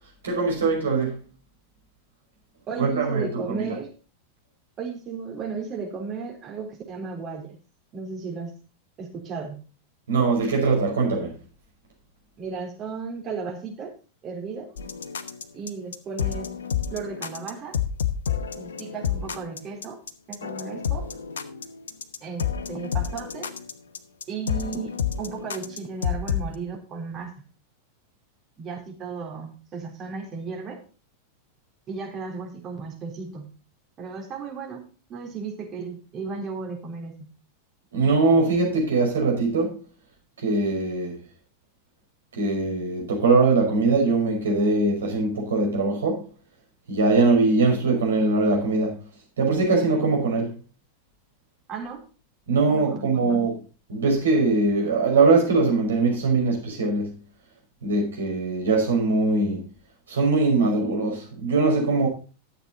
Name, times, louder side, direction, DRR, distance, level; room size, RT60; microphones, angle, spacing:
voice 1, 0.2-1.2 2.8-3.7 10.1-11.3 37.9-39.8 40.4-41.2 42.4-46.2 46.9-49.0 49.4-50.6 52.5-53.5 53.9-57.2 57.8-59.6 60.1-62.1, right 3 dB, 65° right, 5.4 m, -22 dB
voice 2, 2.7-3.9 4.8-7.6 7.9-8.5 9.0-9.6 12.4-13.9 14.2-14.7 15.5-16.5 16.9-17.8 18.5-20.0 20.3-21.1 22.2-23.5 24.3-27.3 28.6-30.8 31.9-33.5 34.0-34.8 35.1-37.3 51.7-52.0 52.7-53.4, right 5 dB, 30° right, 3.8 m, -35 dB
sound 1, 14.8-26.5, left 8 dB, 65° left, 1.0 m, -29 dB
12.5 x 8.2 x 4.1 m
figure-of-eight pair, 90°, 0 cm